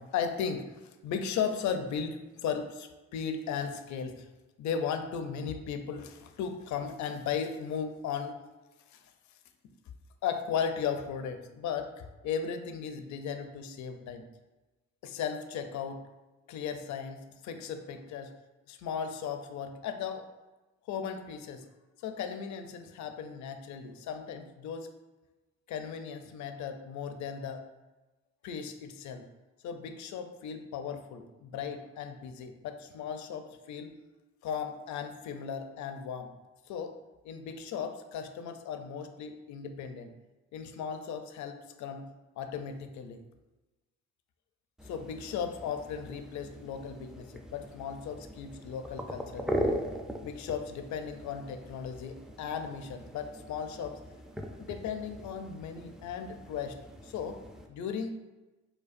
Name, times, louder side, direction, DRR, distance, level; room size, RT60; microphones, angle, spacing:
voice 1, 0.0-4.3 4.6-8.4 8.9-9.0 10.2-14.2 15.0-16.0 16.5-18.3 18.7-20.2 20.9-21.6 22.0-24.9 25.7-27.6 28.4-29.3 29.6-33.9 34.4-36.3 36.7-36.9 37.2-40.1 40.5-42.1 42.4-43.2 44.8-49.8 50.2-54.0 54.6-56.8 57.0-57.4 57.7-58.2, left 7 dB, 70° left, 7 dB, 0.5 m, -36 dB
sound 1, 44.8-57.7, equal, ahead, 0.3 m, -40 dB
5.1 x 2.2 x 2.5 m, 1.1 s
cardioid pair, 90°, 30 cm